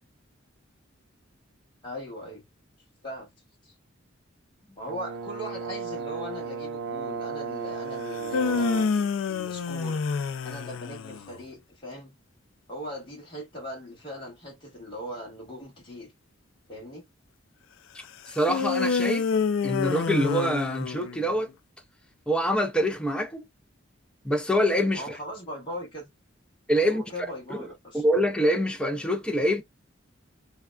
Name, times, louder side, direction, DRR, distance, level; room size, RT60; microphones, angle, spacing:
voice 1, 1.8-2.4 3.0-3.3 3.6-3.7 4.8-10.0 10.4-12.2 12.7-16.1 16.7-17.0 24.9-26.1 26.9-28.0, equal, 25° left, 1.7 m, -39 dB
Brass instrument, 4.9-9.0, right 5 dB, 60° right, 0.4 m, -34 dB
sound 1, 8.1-11.3 18.5-21.4, left 5 dB, 75° left, 0.3 m, -27 dB
voice 2, 18.3-19.3 19.6-21.5 22.3-23.5 24.2-25.2 26.7-27.0 27.5-27.7 27.9-29.6, equal, 5° left, 0.4 m, -25 dB
3.3 x 2.2 x 2.3 m
head